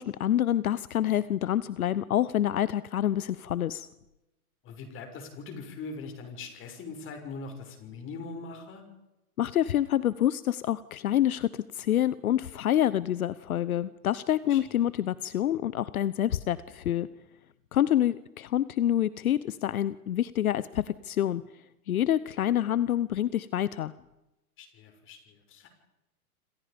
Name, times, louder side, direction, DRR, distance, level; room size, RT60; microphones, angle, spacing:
voice 1, 0.0-3.9 9.4-17.1 17.7-21.4 21.9-23.9, left 11 dB, 70° left, 17 dB, 1.0 m, -27 dB
voice 2, 4.6-8.9 14.5-14.7 24.6-25.7, left 4 dB, 25° left, 5 dB, 6.4 m, -42 dB
27.5 x 27.0 x 5.3 m, 0.95 s
hypercardioid pair, 125°, 44 cm